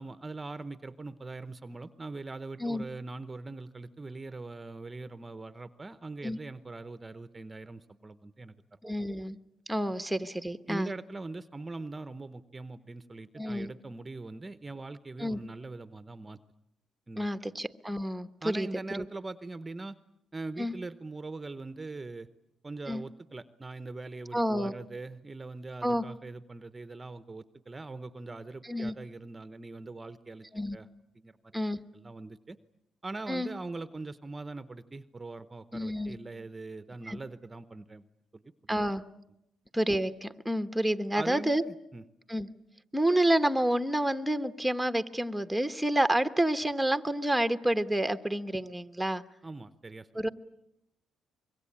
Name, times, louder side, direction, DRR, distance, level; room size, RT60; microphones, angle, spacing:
voice 1, 0.0-8.8 10.7-16.4 17.1-17.3 18.4-19.9 20.3-22.3 22.6-30.5 30.7-30.9 31.1-31.6 31.9-32.6 33.0-38.0 38.3-38.8 41.1-42.0 49.4-50.2, right 3 dB, 20° right, 12 dB, 0.9 m, -42 dB
voice 2, 8.8-9.4 9.7-10.9 13.4-13.7 15.2-15.4 17.2-18.7 18.9-19.0 20.6-20.7 22.9-23.0 24.3-24.7 25.8-26.0 28.6-28.9 30.5-30.8 31.5-31.8 33.3-33.5 35.7-36.2 37.1-37.2 38.7-39.0 39.7-41.6 42.3-42.5 42.9-49.2 50.1-50.3, right 1 dB, 5° right, 9 dB, 1.1 m, -29 dB
25.5 x 22.5 x 8.7 m, 0.85 s
cardioid pair, 90°, 0 cm